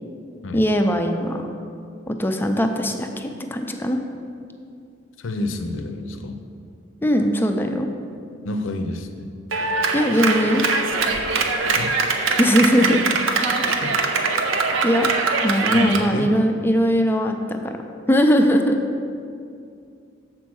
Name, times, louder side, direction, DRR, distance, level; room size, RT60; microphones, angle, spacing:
voice 1, 0.5-1.5 2.1-4.0 7.0-7.9 9.9-10.6 12.4-13.0 13.3-13.6 14.8-15.1 15.4-17.8 18.1-18.8, equal, 10° left, 4 dB, 0.4 m, -20 dB
voice 2, 5.2-6.4 8.4-9.3 11.7-12.0 13.7-14.0 15.7-16.3, left 2 dB, 80° left, 7 dB, 0.6 m, -29 dB
Clapping, 9.5-16.1, right 4 dB, 85° right, 0.6 m, -22 dB
7.3 x 4.5 x 6.2 m, 2.4 s
head